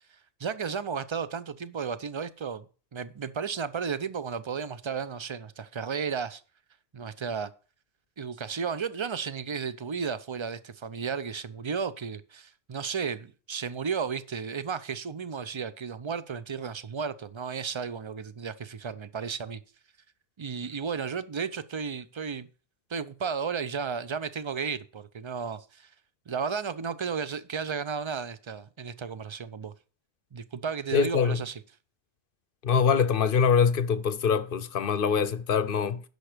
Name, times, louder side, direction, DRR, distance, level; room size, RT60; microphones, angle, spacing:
voice 1, 0.4-2.6 2.9-6.4 6.9-7.5 8.2-19.6 20.4-22.5 22.9-25.9 26.3-29.7 30.3-31.6, right 6 dB, 35° right, 0.5 m, -33 dB
voice 2, 30.9-31.4 32.6-36.0, left 6 dB, 60° left, 0.8 m, -24 dB
10.5 x 6.6 x 5.0 m
omnidirectional pair, 1.1 m